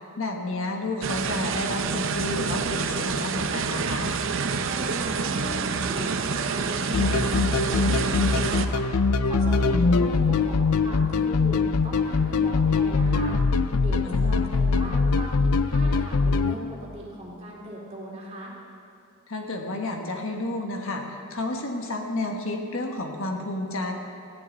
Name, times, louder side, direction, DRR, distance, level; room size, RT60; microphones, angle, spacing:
voice 1, 0.2-4.1 14.0-14.5 19.3-23.9, left 2 dB, 65° left, 2 dB, 1.5 m, -31 dB
sound 1, 1.0-8.6, right 5 dB, 60° right, 0.7 m, -27 dB
voice 2, 4.6-8.8 9.2-13.4 13.8-18.5, right 1 dB, 30° right, -3 dB, 2.7 m, -38 dB
sound 2, 6.9-16.5, left 4 dB, 90° left, 0.6 m, -22 dB
19.0 x 15.5 x 4.0 m, 2.5 s
head